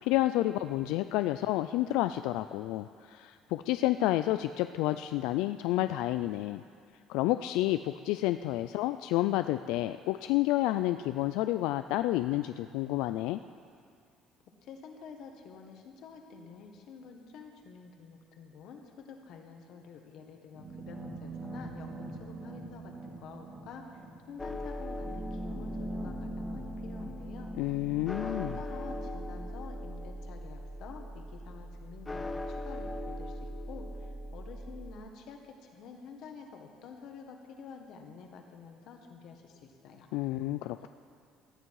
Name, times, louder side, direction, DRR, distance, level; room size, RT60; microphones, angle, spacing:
voice 1, 0.0-6.6 7.1-13.4 27.6-28.6 40.1-40.9, left 15 dB, 85° left, 10 dB, 0.3 m, -30 dB
voice 2, 14.6-27.5 28.2-40.1 40.8-40.9, left 5 dB, 50° left, 3 dB, 1.6 m, -49 dB
sound 1, 20.5-29.5, right 1 dB, 15° right, 2.0 m, -43 dB
sound 2, 24.4-34.9, equal, 10° left, 0.7 m, -40 dB
17.5 x 12.5 x 4.8 m, 2.3 s
cardioid pair, 180°, 0 cm